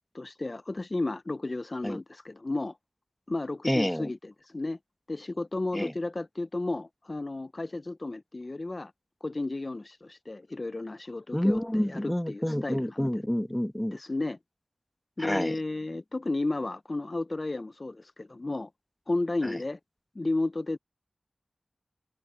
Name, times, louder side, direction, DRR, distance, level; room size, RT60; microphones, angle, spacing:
voice 1, 0.1-2.8 3.3-4.8 5.1-8.9 9.2-13.2 13.9-14.4 15.2-18.7 19.1-19.8 20.1-20.8, left 2 dB, 45° left, 0.6 m, -33 dB
voice 2, 3.6-4.1 5.7-5.9 11.3-14.0 15.2-15.5 19.5-19.6, equal, 10° left, 1.0 m, -28 dB
cardioid pair, 40°, 0 cm